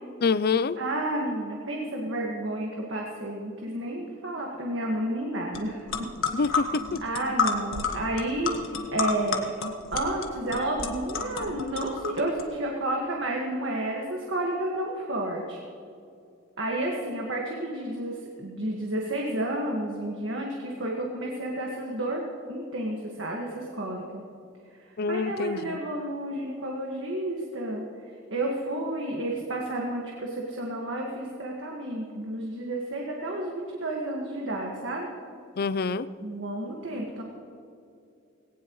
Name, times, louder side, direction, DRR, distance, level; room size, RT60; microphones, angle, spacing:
voice 1, 0.2-0.8 6.3-7.0 25.0-25.8 35.6-36.1, left 4 dB, 50° left, 16 dB, 0.4 m, -26 dB
voice 2, 0.8-5.9 6.5-6.6 7.0-9.5 9.9-15.6 16.6-22.2 22.5-24.2 25.1-27.8 28.3-35.1 36.2-37.2, right 1 dB, 65° right, -1 dB, 1.8 m, -31 dB
sound 1, 5.5-5.6 5.9-12.4, left 4 dB, 80° left, 1.5 m, -30 dB
19.5 x 18.0 x 3.1 m, 2.5 s
head